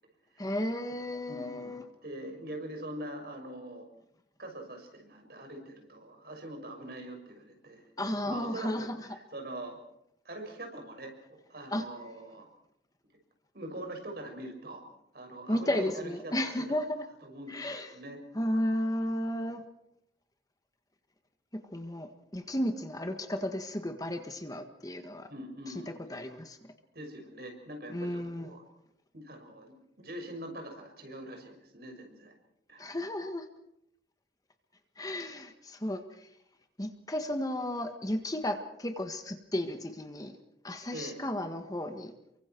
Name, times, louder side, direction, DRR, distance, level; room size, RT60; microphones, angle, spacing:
voice 1, 0.4-1.8 8.0-8.9 11.7-11.8 15.5-17.0 17.5-17.9 18.3-19.6 21.7-25.3 26.1-26.6 27.9-28.5 32.8-33.4 35.0-36.0 36.8-40.3 40.6-42.1, left 1 dB, 20° left, 6 dB, 1.6 m, -33 dB
voice 2, 1.2-3.9 4.4-7.9 8.2-9.8 10.2-12.5 13.5-14.8 15.1-16.8 17.2-18.2 25.3-25.9 26.9-28.6 29.1-32.3 32.7-33.0 40.9-41.2, right 1 dB, 60° right, 4 dB, 6.3 m, -43 dB
29.0 x 24.0 x 4.6 m, 0.79 s
head